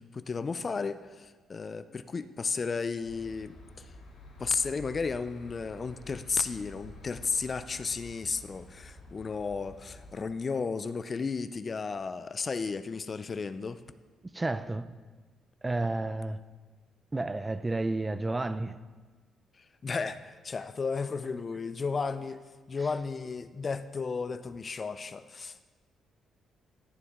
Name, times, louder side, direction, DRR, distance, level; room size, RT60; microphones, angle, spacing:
voice 1, 0.1-3.9 4.4-13.8 19.6-22.4 22.7-25.7, left 4 dB, 35° left, 0.4 m, -34 dB
sound 1, 3.0-10.2, left 1 dB, 85° left, 2.5 m, -50 dB
voice 2, 14.2-14.9 15.6-16.4 17.1-18.8, right 2 dB, 20° right, 0.4 m, -31 dB
14.5 x 6.9 x 3.6 m
cardioid pair, 90°, 0 cm